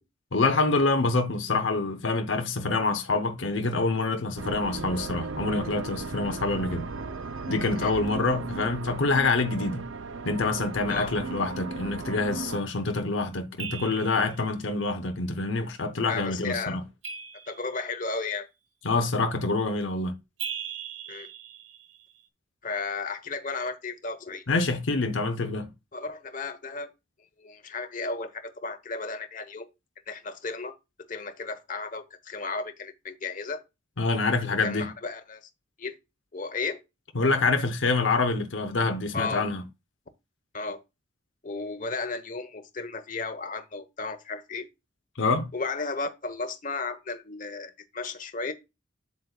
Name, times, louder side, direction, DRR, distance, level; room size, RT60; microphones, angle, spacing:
voice 1, 0.3-6.9 7.5-9.9 10.2-16.8 18.8-20.1 24.5-25.7 34.0-34.9 37.1-39.6 45.2-45.5, left 3 dB, 75° left, 0.8 m, -26 dB
sound 1, 4.4-12.6, right 4 dB, 85° right, 0.6 m, -36 dB
sound 2, 13.6-14.4 17.0-18.1 20.4-22.1, right 7 dB, 70° right, 1.2 m, -39 dB
voice 2, 16.1-16.8 17.5-18.5 21.1-21.3 22.6-24.4 25.9-26.9 27.4-29.7 30.1-30.7 31.1-33.6 34.5-35.5 35.8-36.0 36.3-36.8 39.1-39.5 40.5-40.8 41.4-44.7 45.5-48.5, left 4 dB, 40° left, 1.1 m, -34 dB
8.4 x 7.9 x 2.4 m
head